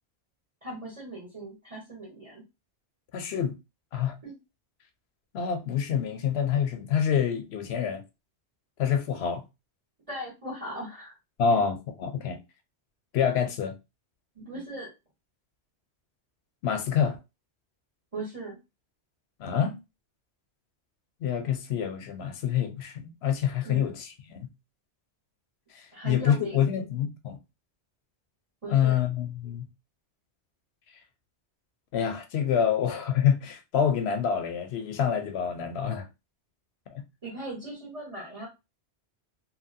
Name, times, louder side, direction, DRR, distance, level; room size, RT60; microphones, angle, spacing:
voice 1, 0.6-2.4 4.2-4.3 10.1-11.1 11.5-11.6 14.3-14.9 18.1-18.6 23.6-23.9 25.9-26.7 28.6-29.0 37.2-38.5, right 1 dB, 30° right, 1.2 m, -38 dB
voice 2, 3.1-3.6 3.9-4.1 5.3-8.0 8.8-9.4 11.4-12.4 13.1-13.7 16.6-17.2 19.4-19.8 21.2-24.5 25.7-27.4 28.7-29.7 31.9-36.1, left 8 dB, 70° left, 0.8 m, -27 dB
2.8 x 2.6 x 2.6 m
omnidirectional pair, 1.1 m